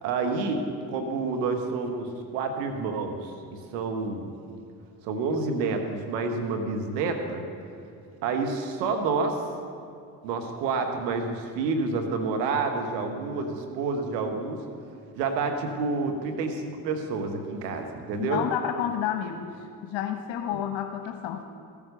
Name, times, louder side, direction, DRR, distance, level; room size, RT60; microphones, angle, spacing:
voice 1, 0.0-4.3 5.0-7.4 8.2-9.4 10.2-14.6 15.2-18.5, right 4 dB, 90° right, 4 dB, 1.4 m, -29 dB
voice 2, 18.2-21.4, left 10 dB, 70° left, 5 dB, 1.0 m, -30 dB
15.0 x 8.7 x 6.7 m, 2.5 s
hypercardioid pair, 60°, 48 cm